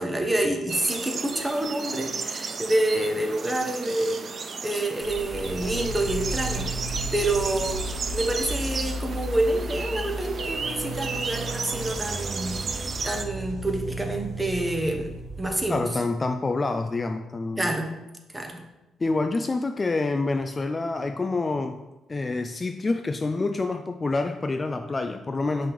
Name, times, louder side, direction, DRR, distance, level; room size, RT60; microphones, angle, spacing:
voice 1, 0.0-7.9 8.1-12.6 13.0-15.8 17.6-17.9 18.3-18.6, right 1 dB, 10° right, 4 dB, 0.9 m, -28 dB
sound 1, 0.7-13.2, right 4 dB, 45° right, 0.5 m, -34 dB
sound 2, 5.0-15.7, right 1 dB, 30° right, 2.2 m, -34 dB
voice 2, 15.7-17.7 19.0-21.8 22.1-25.7, left 3 dB, 25° left, 7 dB, 0.3 m, -27 dB
5.5 x 3.4 x 5.3 m, 1.0 s
cardioid pair, 90°, 0 cm